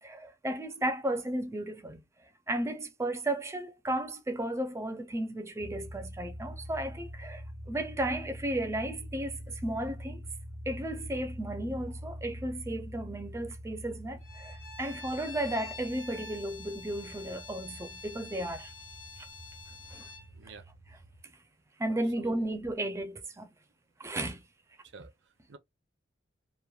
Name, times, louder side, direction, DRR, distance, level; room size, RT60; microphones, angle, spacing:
voice 1, 0.0-2.0 2.5-10.2 10.7-18.7 19.2-19.3 19.9-20.1 21.8-23.5 24.0-24.4, right 1 dB, 15° right, 0.4 m, -34 dB
sound 1, 5.6-21.2, equal, 50° left, 1.3 m, -45 dB
Bowed string instrument, 14.2-20.3, left 4 dB, 90° left, 1.3 m, -47 dB
voice 2, 20.3-20.7 22.2-22.5 24.8-25.6, right 5 dB, 70° right, 0.5 m, -49 dB
3.0 x 2.1 x 2.3 m
head